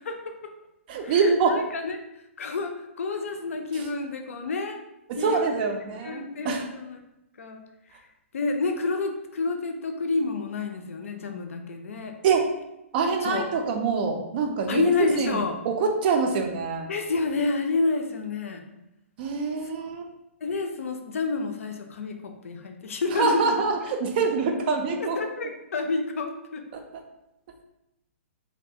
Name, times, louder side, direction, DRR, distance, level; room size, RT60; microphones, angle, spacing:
voice 1, 0.0-0.5 1.0-2.0 2.4-4.8 5.2-5.5 6.0-7.0 7.4-7.6 8.3-12.2 13.2-13.5 14.7-15.6 16.9-18.6 20.4-23.6 25.0-26.6, left 3 dB, 75° left, 5 dB, 0.4 m, -29 dB
voice 2, 0.9-1.6 5.1-6.6 12.2-12.5 12.9-16.9 19.2-20.1 23.2-25.2 26.7-26.8, right 4 dB, 45° right, 4 dB, 0.4 m, -25 dB
2.3 x 2.1 x 2.6 m, 0.88 s
hypercardioid pair, 125°, 7 cm